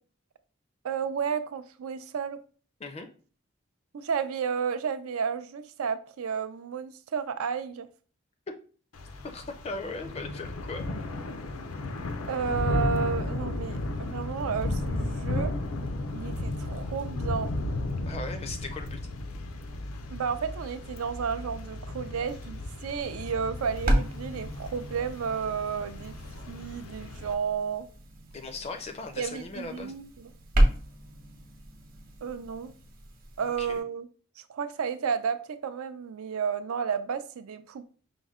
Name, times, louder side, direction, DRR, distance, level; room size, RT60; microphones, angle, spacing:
voice 1, 0.8-2.4 3.9-7.9 12.3-15.5 16.1-17.5 20.1-26.1 26.5-27.9 29.2-30.3 32.2-32.7 33.4-34.1 34.4-37.9, right 6 dB, 90° right, 0.4 m, -32 dB
Thunder / Rain, 8.9-27.3, left 2 dB, 85° left, 0.5 m, -34 dB
voice 2, 9.2-10.9 18.1-19.0 28.3-29.9 33.6-33.8, left 3 dB, 30° left, 0.4 m, -38 dB
sound 1, 23.6-33.8, right 1 dB, 45° right, 0.8 m, -32 dB
5.2 x 2.1 x 3.5 m
head